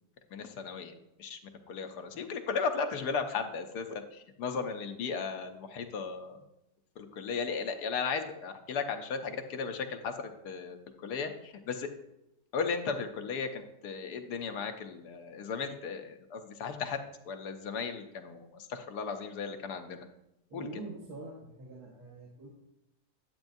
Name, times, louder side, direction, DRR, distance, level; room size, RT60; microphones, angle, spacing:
voice 1, 0.3-1.4 1.7-6.4 7.0-10.1 10.4-11.9 12.5-17.0 17.3-20.0 20.5-20.7, left 5 dB, 70° left, 6 dB, 1.2 m, -36 dB
voice 2, 20.5-22.6, right 2 dB, 65° right, -5 dB, 2.0 m, -44 dB
10.5 x 8.0 x 2.6 m, 0.86 s
omnidirectional pair, 1.9 m